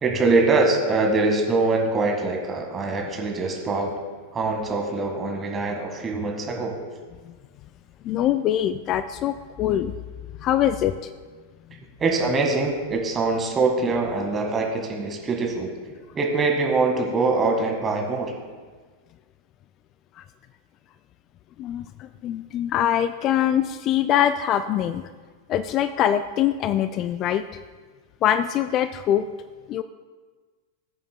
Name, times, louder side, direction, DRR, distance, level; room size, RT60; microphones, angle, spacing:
voice 1, 0.0-3.9 4.3-6.7 12.0-18.4, right 3 dB, 20° right, 2 dB, 1.6 m, -23 dB
voice 2, 8.0-10.0 10.4-11.1 20.2-20.3 21.6-25.1 25.5-27.6 28.2-29.3 29.7-29.8, left 10 dB, 35° left, 12 dB, 0.3 m, -23 dB
19.5 x 7.8 x 2.2 m, 1.4 s
figure-of-eight pair, 90°, 0 cm